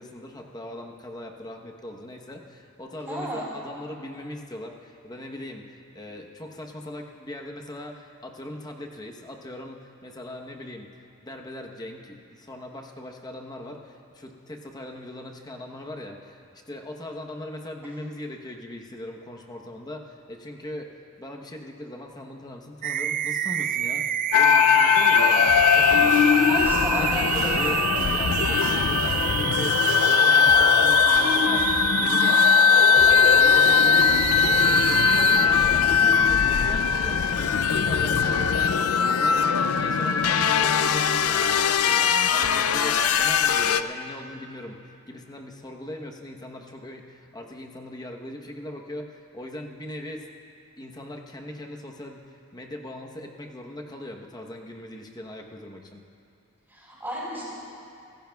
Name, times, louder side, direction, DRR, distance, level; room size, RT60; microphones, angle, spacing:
voice 1, 0.0-5.7 5.9-10.9 11.2-24.1 24.3-26.3 26.7-27.1 27.5-50.3 50.8-56.0, left 1 dB, 20° left, 1 dB, 1.0 m, -40 dB
voice 2, 3.1-3.4 26.4-27.6 56.7-57.5, equal, 10° right, -6 dB, 3.9 m, -32 dB
sound 1, 22.8-35.5, right 9 dB, 40° right, 0.3 m, -28 dB
sound 2, 24.3-43.8, left 7 dB, 75° left, 0.4 m, -20 dB
sound 3, 25.5-35.5, right 1 dB, 60° right, 2.7 m, -41 dB
24.0 x 16.0 x 2.3 m, 2.5 s
head